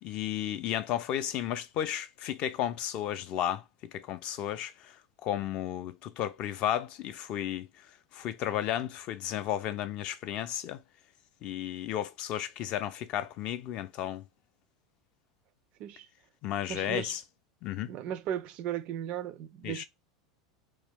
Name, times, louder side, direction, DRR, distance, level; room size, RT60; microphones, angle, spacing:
voice 1, 0.0-3.6 3.9-5.0 5.2-7.7 8.1-10.8 11.4-14.2 16.4-17.2 17.6-17.9 19.6-19.8, left 11 dB, 40° left, 0.4 m, -33 dB
voice 2, 16.7-17.1 17.9-19.8, right 10 dB, 40° right, 0.3 m, -36 dB
2.5 x 2.3 x 3.6 m
figure-of-eight pair, 80°, 3 cm